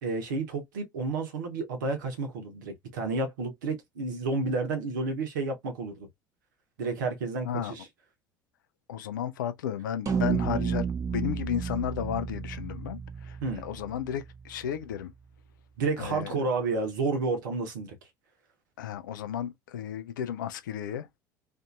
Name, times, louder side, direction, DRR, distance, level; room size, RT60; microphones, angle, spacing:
voice 1, 0.0-6.1 6.8-7.8 13.4-13.6 15.8-17.9, right 3 dB, 70° right, 0.9 m, -31 dB
voice 2, 8.9-15.1 16.0-16.5 18.8-21.1, left 9 dB, 70° left, 0.4 m, -33 dB
sound 1, 10.1-14.5, right 6 dB, 30° right, 0.8 m, -32 dB
2.6 x 2.6 x 2.4 m
figure-of-eight pair, 60°, 11 cm